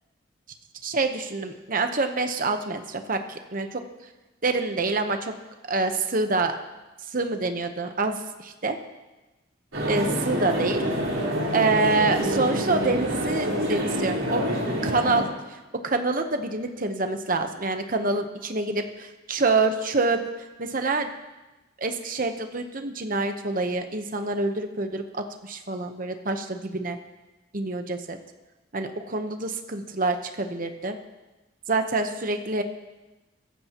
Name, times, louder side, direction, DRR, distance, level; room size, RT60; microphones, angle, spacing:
voice 1, 0.8-3.8 4.4-5.3 5.7-6.6 7.1-8.2 8.6-8.8 9.9-10.8 11.5-14.4 14.8-20.2 20.6-21.1 21.8-27.0 27.5-28.2 28.7-31.0 31.7-32.6, right 3 dB, 45° right, 6 dB, 1.0 m, -26 dB
sound 1, 9.7-15.3, equal, 90° right, 4.0 m, -27 dB
23.0 x 15.0 x 3.0 m, 1.1 s
head